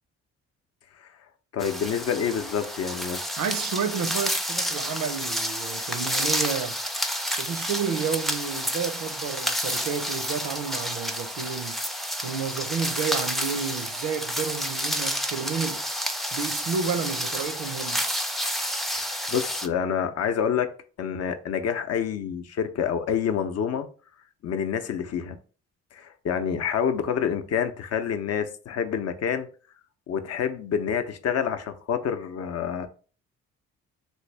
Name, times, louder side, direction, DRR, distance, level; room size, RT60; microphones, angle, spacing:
voice 1, 1.5-3.2 18.9-20.7 21.0-23.9 24.4-25.4 25.9-29.5 30.1-32.9, left 7 dB, 55° left, 0.6 m, -27 dB
sound 1, 1.6-19.7, equal, ahead, 0.4 m, -30 dB
voice 2, 3.4-6.8 7.4-11.8 12.2-15.9 16.3-18.1, right 6 dB, 75° right, 0.5 m, -31 dB
3.2 x 2.6 x 3.2 m
cardioid pair, 85°, 29 cm